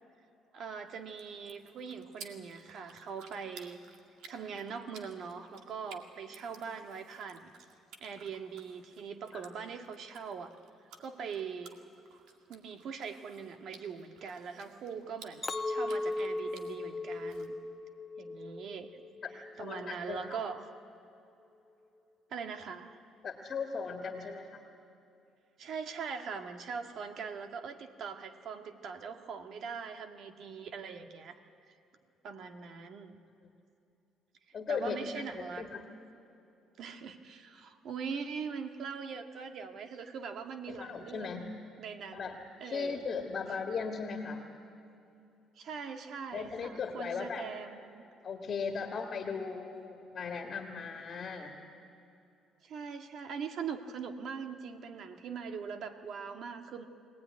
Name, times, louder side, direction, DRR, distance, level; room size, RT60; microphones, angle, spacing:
voice 1, 0.5-3.8 4.3-7.5 8.0-10.5 11.0-11.7 12.5-17.6 18.2-18.9 19.3-20.7 22.3-23.0 25.6-31.4 32.2-33.1 34.7-35.7 36.8-41.3 41.8-42.3 42.6-42.9 45.5-48.0 52.6-56.8, right 6 dB, 55° right, 5 dB, 1.7 m, -41 dB
sound 1, 0.9-17.5, right 5 dB, 85° right, 2.1 m, -56 dB
Chink clink, 15.4-19.8 20.2-20.7, left 2 dB, 15° left, 0.9 m, -37 dB
voice 2, 19.2-20.4 23.2-24.6 34.5-35.2 35.6-35.8 40.7-41.6 42.1-42.4 42.6-44.4 46.3-47.5 48.2-51.6, left 5 dB, 40° left, 2 dB, 1.9 m, -37 dB
23.0 x 18.5 x 9.6 m, 2.8 s
cardioid pair, 125°, 0 cm